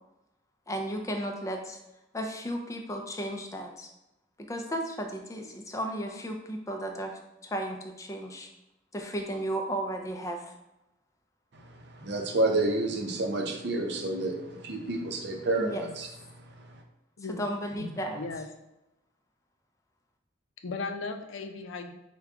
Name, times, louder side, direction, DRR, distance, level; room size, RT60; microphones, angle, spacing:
voice 1, 0.7-1.8 2.1-3.9 4.4-8.5 8.9-10.6 15.6-15.9 17.4-18.2, right 1 dB, 15° left, 3 dB, 0.4 m, -34 dB
voice 2, 11.5-16.1 16.4-16.7, right 2 dB, 60° right, 2 dB, 0.6 m, -30 dB
voice 3, 18.1-18.5 20.6-21.9, left 3 dB, 80° left, 7 dB, 0.4 m, -36 dB
4.8 x 2.2 x 3.5 m, 0.92 s
head